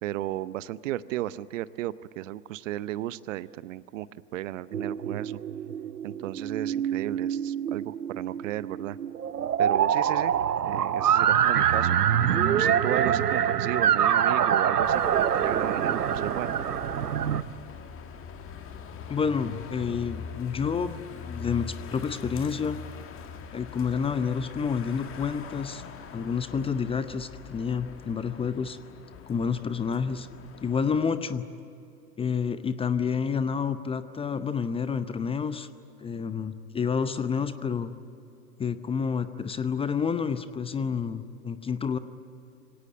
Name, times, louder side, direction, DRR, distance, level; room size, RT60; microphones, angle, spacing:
voice 1, 0.0-5.4 6.0-9.0 9.6-10.3 10.6-12.0 12.5-16.6, right 14 dB, 55° right, 18 dB, 0.8 m, -34 dB
sound 1, 4.7-17.4, right 9 dB, 80° right, 1.0 m, -25 dB
sound 2, 14.8-31.1, left 6 dB, 30° left, 1.9 m, -42 dB
voice 2, 19.1-22.8 23.5-25.8 26.1-28.8 29.3-30.3 30.6-31.5 32.2-35.7 36.0-37.9 38.6-42.0, left 6 dB, 10° left, 12 dB, 0.7 m, -29 dB
25.0 x 17.5 x 9.6 m, 2.8 s
figure-of-eight pair, 100°, 46 cm